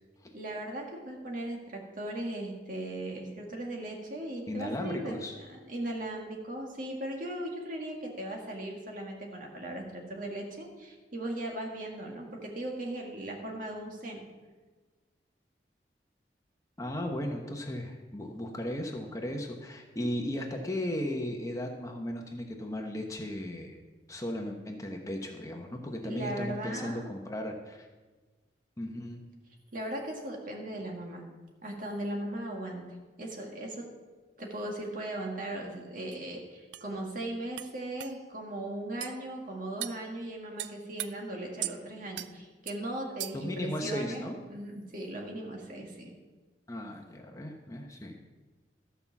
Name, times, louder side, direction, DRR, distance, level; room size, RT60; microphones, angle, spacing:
voice 1, 0.3-14.3 26.0-27.1 29.7-31.3 31.6-32.8 33.2-33.9 34.4-46.2, right 1 dB, 50° right, 0 dB, 2.0 m, -38 dB
voice 2, 4.5-5.4 16.8-23.8 24.1-27.9 28.8-29.2 43.3-44.4 46.7-48.2, left 1 dB, 20° left, 2 dB, 0.9 m, -36 dB
sound 1, 36.1-36.2 36.7-36.9 37.6-37.7 38.0-38.1 39.0-39.2 39.8-40.0 40.6-41.1 41.6-41.8 42.2-42.3 42.7-42.8 43.2-43.5, right 14 dB, 85° right, 0.4 m, -37 dB
13.5 x 5.6 x 7.1 m, 1.3 s
head